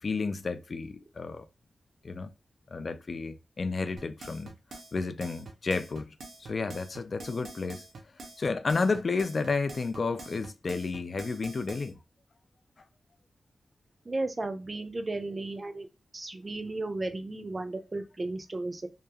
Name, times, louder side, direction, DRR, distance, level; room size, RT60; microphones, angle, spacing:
voice 1, 0.0-1.5 2.0-2.3 2.7-4.5 4.9-7.8 8.4-12.0, left 4 dB, 50° left, 0.3 m, -31 dB
sound 1, 4.0-11.9, right 2 dB, 85° right, 0.6 m, -46 dB
voice 2, 14.1-15.9 16.1-18.9, right 2 dB, 30° right, 0.5 m, -34 dB
2.8 x 2.4 x 2.2 m
wide cardioid pair, 115°, 0 cm